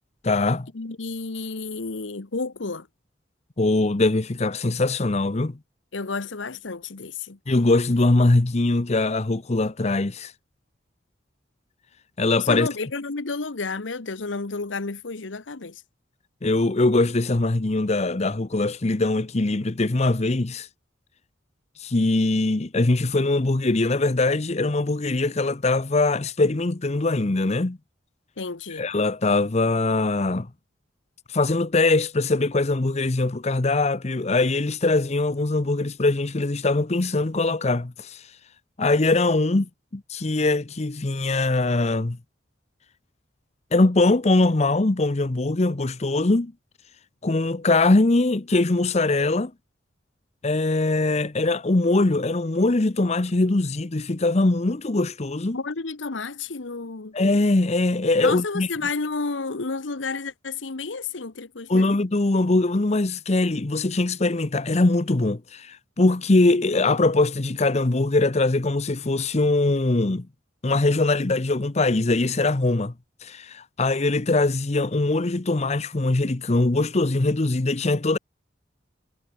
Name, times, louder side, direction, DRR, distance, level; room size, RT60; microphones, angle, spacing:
voice 1, 0.2-0.7 3.6-5.6 7.5-10.3 12.2-12.7 16.4-20.7 21.8-27.8 28.8-30.5 31.3-38.2 38.8-42.2 43.7-46.5 47.2-49.5 50.4-55.6 57.1-58.7 61.7-70.3 70.6-72.9 73.2-78.2, left 2 dB, 35° left, 0.8 m, -22 dB
voice 2, 0.7-2.9 5.9-7.4 12.4-15.8 28.4-28.9 55.5-57.1 58.2-61.9, left 4 dB, 90° left, 1.1 m, -31 dB
head